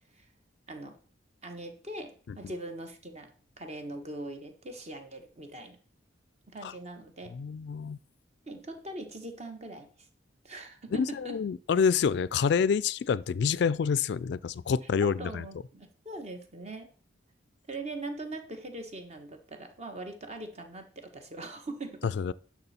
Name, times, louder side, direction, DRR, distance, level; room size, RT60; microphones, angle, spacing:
voice 1, 1.4-3.3 3.6-5.8 6.5-7.3 8.5-9.9 10.4-11.4 15.0-16.9 17.7-22.1, right 2 dB, 35° right, 1.3 m, -41 dB
voice 2, 7.3-8.0 11.0-15.5 22.2-22.3, left 6 dB, 60° left, 0.3 m, -27 dB
10.5 x 6.1 x 4.3 m
head